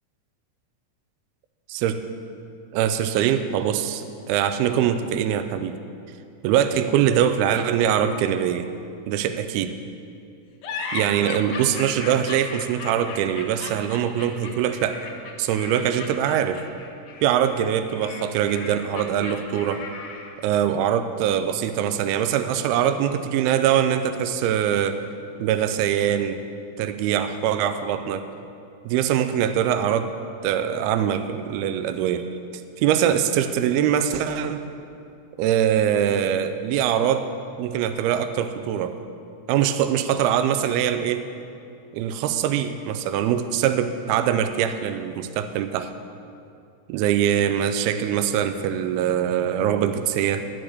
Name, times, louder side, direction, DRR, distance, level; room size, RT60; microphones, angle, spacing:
voice 1, 1.7-2.0 2.7-5.8 6.4-8.7 9.1-9.7 10.9-15.0 15.4-16.6 17.2-19.8 20.4-25.0 25.4-26.4 26.8-28.3 28.9-30.2 30.4-32.3 32.8-34.7 35.4-37.3 37.6-39.0 39.5-41.2 41.9-45.9 46.9-50.4, right 9 dB, 80° right, 10 dB, 2.5 m, -23 dB
sound 1, 10.6-20.5, left 4 dB, 60° left, 2.0 m, -36 dB
12.5 x 6.5 x 7.9 m, 2.5 s
omnidirectional pair, 4.5 m